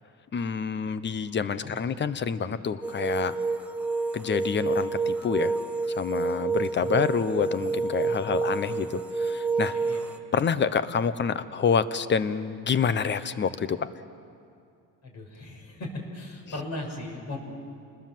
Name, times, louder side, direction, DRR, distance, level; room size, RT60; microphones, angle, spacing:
voice 1, 0.3-3.3 4.1-5.5 5.9-9.7 10.3-13.8, left 6 dB, 30° left, 14 dB, 1.0 m, -27 dB
voice 2, 1.6-2.0 6.8-7.1 8.2-8.5 9.7-10.0 15.0-17.4, left 2 dB, 50° left, 1 dB, 5.8 m, -38 dB
sound 1, 2.8-10.2, right 4 dB, 5° right, 1.2 m, -29 dB
28.5 x 20.0 x 7.6 m, 2.4 s
cardioid pair, 120°, 34 cm